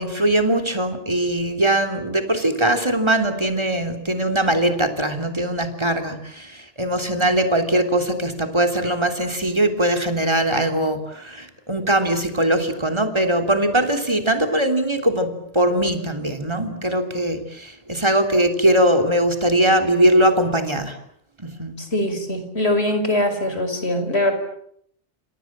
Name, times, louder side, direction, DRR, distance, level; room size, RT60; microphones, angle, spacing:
voice 1, 0.0-21.0 21.4-21.8, right 1 dB, 25° right, 5 dB, 3.3 m, -21 dB
voice 2, 21.8-24.3, left 1 dB, 60° left, 7 dB, 5.7 m, -22 dB
29.5 x 27.0 x 7.5 m, 0.70 s
omnidirectional pair, 1.2 m